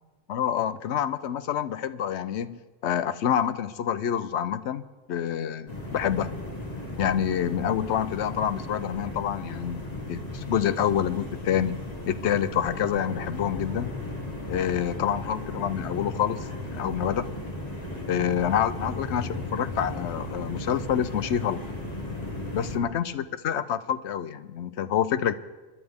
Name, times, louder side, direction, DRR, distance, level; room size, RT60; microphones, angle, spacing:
voice 1, 0.3-4.8 5.1-6.3 7.0-11.8 12.1-13.9 14.5-17.3 18.1-21.6 22.5-25.3, left 9 dB, 75° left, 14 dB, 0.9 m, -27 dB
sound 1, 5.7-22.8, left 1 dB, 35° left, 2.1 m, -36 dB
27.5 x 11.5 x 3.6 m, 1.3 s
omnidirectional pair, 1.2 m